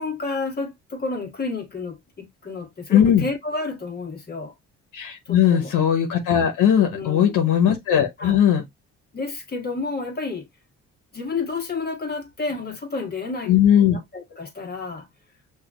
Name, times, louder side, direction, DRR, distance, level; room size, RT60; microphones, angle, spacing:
voice 1, 0.0-4.5 5.3-5.7 6.9-7.5 8.2-8.4 9.1-10.5 11.1-13.5 13.9-15.1, left 3 dB, 30° left, 1.4 m, -30 dB
voice 2, 2.9-3.3 4.9-8.6 13.5-14.0, left 9 dB, 90° left, 1.0 m, -18 dB
6.1 x 2.6 x 2.4 m
cardioid pair, 90°, 30 cm